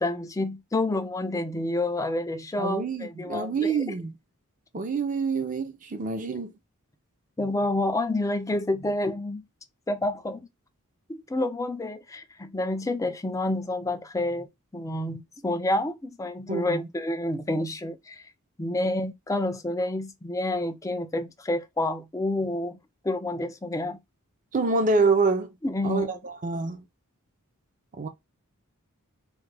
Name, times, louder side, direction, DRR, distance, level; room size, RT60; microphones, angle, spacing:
voice 1, 0.0-3.8 7.4-9.4 9.9-10.5 11.1-14.5 14.7-18.2 18.6-22.8 23.0-24.0 25.6-26.1, left 2 dB, 15° left, 0.4 m, -29 dB
voice 2, 2.6-4.1 4.7-6.5 16.5-16.9 24.5-25.5 25.8-26.8 27.9-28.1, right 4 dB, 35° right, 0.5 m, -26 dB
3.3 x 2.2 x 3.2 m
head